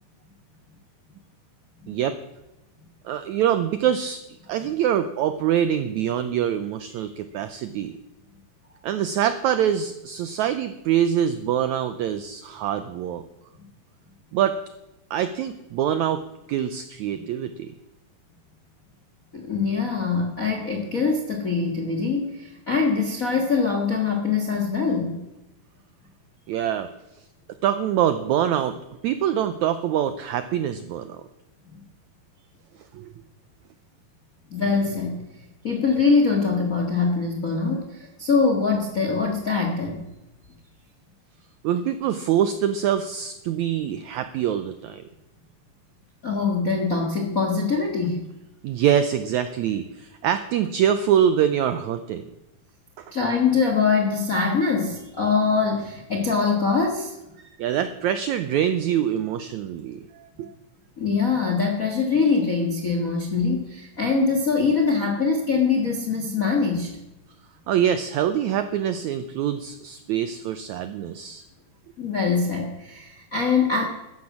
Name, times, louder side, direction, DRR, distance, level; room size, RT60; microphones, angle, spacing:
voice 1, 1.9-2.2 3.0-4.2 4.5-7.9 8.8-13.2 14.3-14.6 15.1-17.7 26.5-26.9 27.6-28.8 29.0-31.2 32.9-33.1 41.6-45.0 48.6-52.3 53.0-53.1 57.4-60.5 67.7-71.4, right 9 dB, 85° right, 11 dB, 1.6 m, -24 dB
voice 2, 19.3-25.2 34.5-35.2 35.6-40.0 46.2-48.2 53.1-57.1 61.0-66.9 72.0-73.8, left 4 dB, 50° left, 3 dB, 1.0 m, -23 dB
13.0 x 10.5 x 7.2 m, 0.97 s
omnidirectional pair, 4.1 m